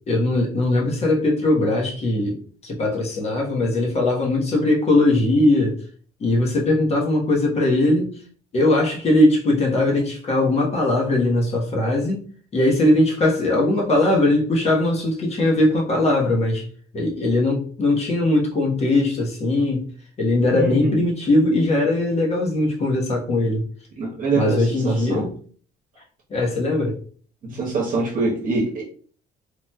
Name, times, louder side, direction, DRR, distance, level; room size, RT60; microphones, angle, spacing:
voice 1, 0.1-5.8 6.2-8.2 8.5-12.2 12.5-16.7 16.9-19.9 20.2-23.6 24.3-25.3 26.3-27.0, left 2 dB, 40° left, 1.1 m, -20 dB
voice 2, 20.6-21.0 24.0-25.2 27.4-28.8, right 3 dB, 50° right, 1.0 m, -24 dB
3.0 x 2.6 x 2.2 m
cardioid pair, 110°, 17 cm